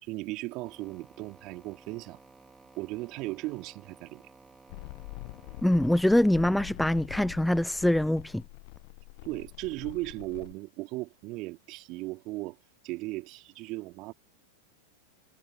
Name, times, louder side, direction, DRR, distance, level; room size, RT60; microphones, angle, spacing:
voice 1, 0.0-2.2 2.8-4.2 9.2-12.6 12.8-14.1, right 21 dB, 45° right, 2.7 m, -37 dB
sound 1, 0.6-6.4, right 4 dB, 15° right, 3.2 m, -56 dB
sound 2, 4.7-10.5, left 26 dB, 55° left, 0.8 m, -45 dB
voice 2, 5.6-8.4, left 1 dB, 5° left, 0.4 m, -24 dB
hypercardioid pair, 100°, 0 cm